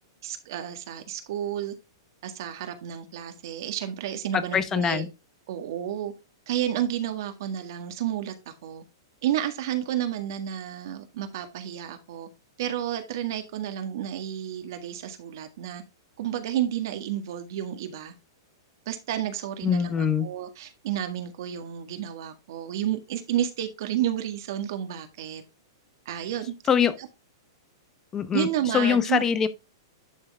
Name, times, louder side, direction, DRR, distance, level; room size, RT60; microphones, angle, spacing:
voice 1, 0.2-1.7 2.2-5.0 5.5-6.1 6.5-8.8 9.2-12.3 12.6-15.8 16.2-18.1 18.8-25.4 26.0-26.5 28.3-29.2, right 11 dB, 60° right, 1.7 m, -31 dB
voice 2, 4.3-5.1 19.6-20.3 26.7-26.9 28.1-28.5 28.7-29.5, left 7 dB, 20° left, 0.8 m, -23 dB
11.0 x 3.7 x 3.5 m
hypercardioid pair, 145°, 2 cm